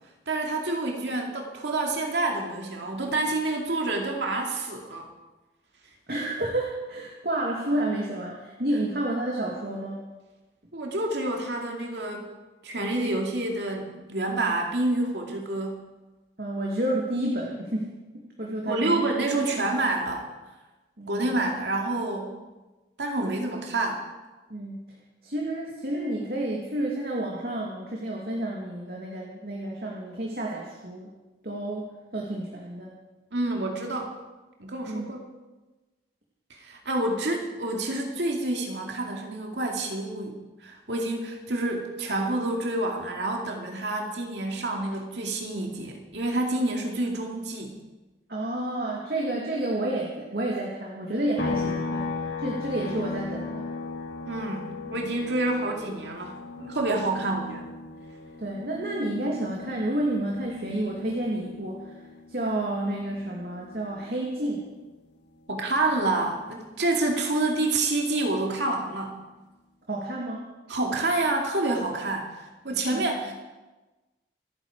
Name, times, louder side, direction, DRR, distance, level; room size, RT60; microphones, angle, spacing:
voice 1, 0.3-5.1 10.7-12.3 12.6-15.8 18.7-20.3 21.1-22.4 23.0-24.0 33.3-34.1 34.6-35.2 36.6-47.8 54.3-57.7 65.5-69.2 70.7-73.3, right 2 dB, 85° right, 1 dB, 2.4 m, -28 dB
voice 2, 6.1-10.1 16.4-19.0 21.0-21.4 24.5-24.9 25.2-31.1 31.4-32.9 34.8-35.1 48.3-53.6 58.4-62.0 62.3-64.7 69.9-70.5 72.9-73.1, right 1 dB, 60° right, -2 dB, 2.4 m, -30 dB
sound 1, 51.4-64.9 65.3-67.5, left 3 dB, 85° left, 1.8 m, -37 dB
27.0 x 9.8 x 4.9 m, 1.2 s
head